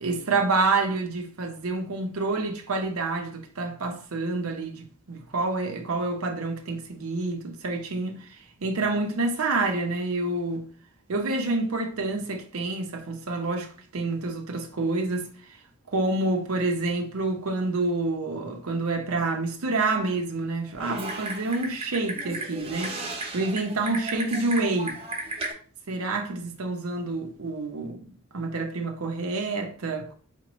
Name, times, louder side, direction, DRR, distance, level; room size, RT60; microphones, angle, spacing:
voice 1, 0.0-8.2 8.6-10.7 11.1-15.3 15.9-23.0 23.3-25.0 25.9-28.1 28.3-30.1, right 3 dB, 85° right, 0.7 m, -28 dB
Typing, 20.8-25.5, right 2 dB, 25° right, 1.0 m, -34 dB
4.3 x 3.0 x 2.9 m
head